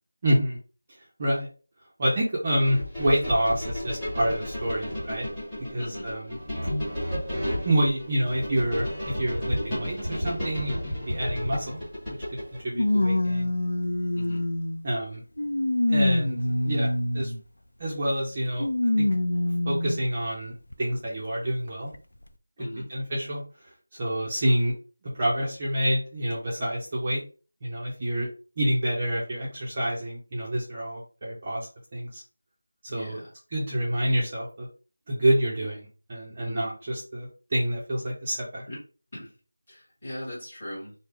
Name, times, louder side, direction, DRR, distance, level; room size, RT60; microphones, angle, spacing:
voice 1, 0.2-0.6 1.2-1.5 2.0-5.3 5.7-6.4 7.6-11.8 12.3-12.4 12.6-13.5 14.8-15.2 15.9-16.4 16.6-17.3 17.8-18.7 19.0-19.1 19.7-20.5 20.8-21.9 22.6-24.7 25.0-27.2 27.6-28.3 28.6-32.2 32.8-33.2 33.5-34.7 35.1-38.6, right 1 dB, 20° right, -4 dB, 0.5 m, -27 dB
sound 1, 2.6-12.6, equal, ahead, 0.9 m, -32 dB
voice 2, 5.8-6.1 14.2-14.4 22.6-22.9 32.9-33.3 36.4-36.7 38.7-38.8 39.1-39.3 39.7-40.9, left 1 dB, 20° left, -7 dB, 1.4 m, -39 dB
sound 2, 11.5-11.6 12.7-14.8 15.4-17.4 18.6-20.0 20.7-20.8 21.9-22.0, left 1 dB, 90° left, 0.4 m, -25 dB
3.5 x 2.0 x 3.2 m, 0.35 s
figure-of-eight pair, 175°, 0 cm